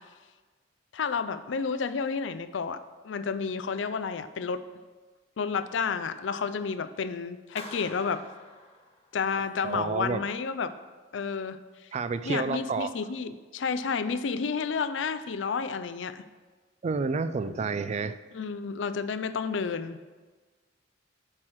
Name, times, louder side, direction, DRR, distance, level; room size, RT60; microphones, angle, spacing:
voice 1, 0.9-2.8 3.0-4.6 5.4-8.2 9.1-10.7 11.1-11.6 12.3-16.2 17.5-17.6 18.3-20.0, left 5 dB, 75° left, 11 dB, 0.4 m, -31 dB
Clapping, 7.6-9.4, left 2 dB, 35° left, 1.1 m, -46 dB
voice 2, 9.6-10.2 11.9-12.9 16.8-18.2, right 4 dB, 35° right, 13 dB, 0.3 m, -29 dB
7.4 x 4.7 x 6.3 m, 1.3 s
head